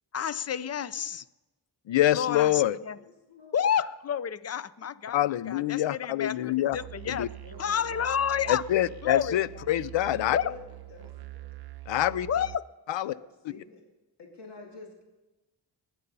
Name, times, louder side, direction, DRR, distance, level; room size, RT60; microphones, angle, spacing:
voice 1, 0.1-1.2 2.1-3.0 3.5-7.3 7.6-8.6 9.0-9.4 10.3-10.5 12.3-12.6, left 8 dB, 35° left, 17 dB, 0.5 m, -30 dB
voice 2, 1.9-2.8 5.1-6.8 7.1-7.3 8.5-10.4 11.9-12.3 12.9-13.1, left 13 dB, 90° left, 19 dB, 0.5 m, -25 dB
voice 3, 2.9-3.6 7.4-8.1 10.1-11.5 12.1-12.4 13.0-13.8 14.2-15.0, left 3 dB, 70° left, 1 dB, 2.5 m, -48 dB
Musical instrument, 6.7-12.6, right 17 dB, 60° right, 0.6 m, -44 dB
20.0 x 10.0 x 5.4 m, 1.1 s
wide cardioid pair, 125°, 44 cm